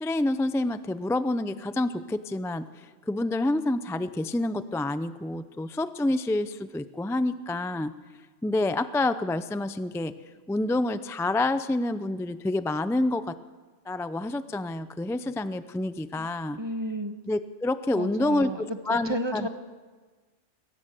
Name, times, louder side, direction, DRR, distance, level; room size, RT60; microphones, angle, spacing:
voice 1, 0.0-2.7 3.1-7.9 8.4-10.1 10.5-13.4 13.9-16.6 17.3-18.5 18.9-19.5, left 2 dB, 5° left, 12 dB, 0.3 m, -28 dB
voice 2, 16.5-17.2 17.9-19.5, right 1 dB, 20° right, 7 dB, 1.4 m, -32 dB
22.0 x 18.0 x 7.7 m, 1.4 s
omnidirectional pair, 1.4 m